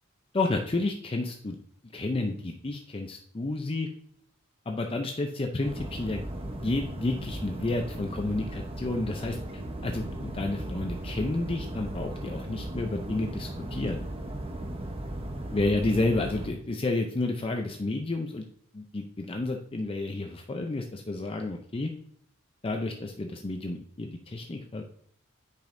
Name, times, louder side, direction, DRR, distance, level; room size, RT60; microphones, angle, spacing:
voice 1, 0.3-1.6 1.9-3.9 4.7-6.2 6.6-9.4 9.8-14.0 15.5-18.4 18.7-21.9 22.6-24.8, left 2 dB, 25° left, 3 dB, 0.5 m, -30 dB
sound 1, 5.6-16.5, right 1 dB, 30° right, 0.9 m, -37 dB
9.1 x 5.2 x 2.6 m, 0.63 s
head